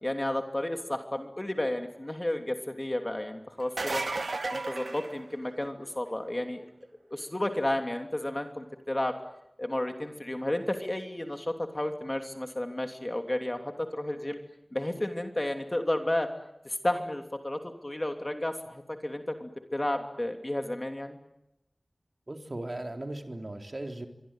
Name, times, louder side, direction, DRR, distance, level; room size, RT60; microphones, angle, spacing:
voice 1, 0.0-4.0 4.5-6.6 7.1-9.1 9.6-14.4 14.7-16.3 16.6-21.2, left 1 dB, 30° left, 5 dB, 3.0 m, -32 dB
sound 1, 3.6-5.8 11.4-11.5 13.3-13.4, right 3 dB, 85° right, 2.0 m, -34 dB
voice 2, 22.3-24.1, right 1 dB, 45° right, 5 dB, 3.8 m, -37 dB
26.0 x 24.0 x 9.1 m, 0.84 s
wide cardioid pair, 45°, 0 cm